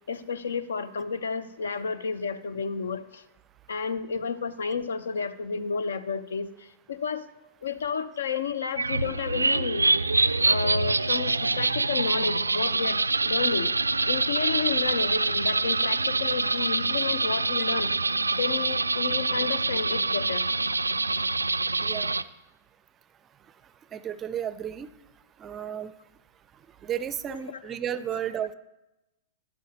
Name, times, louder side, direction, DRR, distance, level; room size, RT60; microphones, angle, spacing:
voice 1, 0.1-3.2 3.7-7.2 7.6-9.9 10.4-13.7 14.1-17.9 18.4-20.4 27.3-27.8 28.1-28.2, left 5 dB, 70° left, 14 dB, 0.7 m, -31 dB
sound 1, 8.8-22.2, right 3 dB, 85° right, 0.3 m, -25 dB
voice 2, 21.8-22.2 23.9-24.9 25.4-25.9 26.8-28.5, right 9 dB, 25° right, 16 dB, 0.5 m, -33 dB
11.5 x 11.0 x 2.8 m, 0.96 s
figure-of-eight pair, 105°, 0 cm